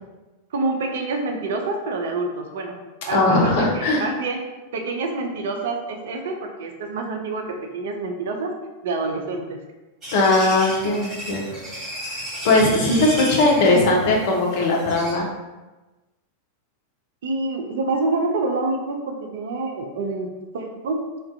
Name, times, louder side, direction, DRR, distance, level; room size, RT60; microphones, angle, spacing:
voice 1, 0.5-2.8 3.0-4.4 4.7-8.5 8.8-9.6 17.2-20.3 20.5-21.0, right 3 dB, 60° right, 3 dB, 0.3 m, -27 dB
voice 2, 3.1-4.1 10.1-11.6 12.1-15.3, left 2 dB, 50° left, -1 dB, 0.5 m, -19 dB
sound 1, 10.0-15.1, right 1 dB, 20° right, 0.9 m, -34 dB
2.3 x 2.1 x 2.5 m, 1.2 s
figure-of-eight pair, 90°, 0 cm